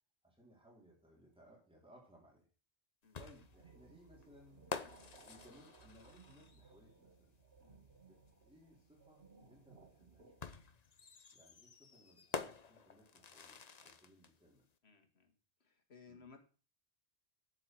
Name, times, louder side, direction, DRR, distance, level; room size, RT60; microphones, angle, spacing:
voice 1, 0.2-2.5 3.2-4.7 5.3-7.3 8.1-10.5 11.3-14.6 16.1-16.2, equal, 5° right, -2 dB, 3.7 m, -63 dB
sound 1, 3.1-6.8 8.3-8.4 10.4-14.3, left 5 dB, 40° left, 0.9 m, -48 dB
sound 2, 3.4-10.4, right 4 dB, 65° right, 1.8 m, -63 dB
voice 2, 14.8-15.3 15.6-16.4, left 5 dB, 70° left, 6 dB, 2.1 m, -60 dB
8.0 x 7.4 x 7.6 m, 0.37 s
omnidirectional pair, 1.1 m